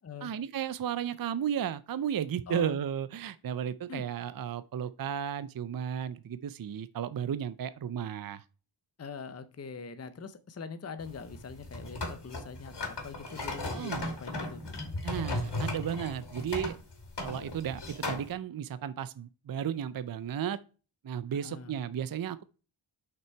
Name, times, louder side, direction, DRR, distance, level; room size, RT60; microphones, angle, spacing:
voice 1, 0.2-8.4 13.7-14.1 15.0-16.8 17.2-20.6 21.0-22.4, right 9 dB, 45° right, 0.5 m, -34 dB
voice 2, 2.5-2.8 3.9-4.0 9.0-14.6 21.3-21.8, left 5 dB, 30° left, 0.7 m, -43 dB
sound 1, 11.0-18.3, left 2 dB, 55° left, 2.5 m, -36 dB
6.1 x 5.9 x 4.4 m
wide cardioid pair, 105°, 50 cm